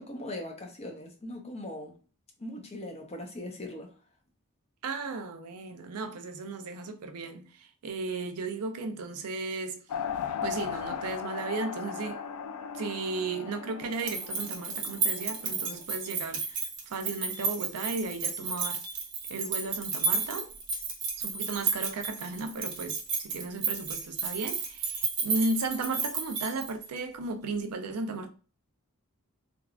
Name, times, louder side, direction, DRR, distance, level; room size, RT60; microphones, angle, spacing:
voice 1, 0.0-2.0 2.4-4.0, left 1 dB, 30° left, 0.6 m, -40 dB
voice 2, 4.8-9.8 10.4-12.2 12.7-18.8 19.3-20.5 21.2-28.3, right 3 dB, 80° right, 0.5 m, -35 dB
sound 1, 9.9-15.8, left 7 dB, 85° left, 0.4 m, -37 dB
sound 2, 13.9-27.0, right 5 dB, 55° right, 0.8 m, -32 dB
3.4 x 2.3 x 2.4 m
head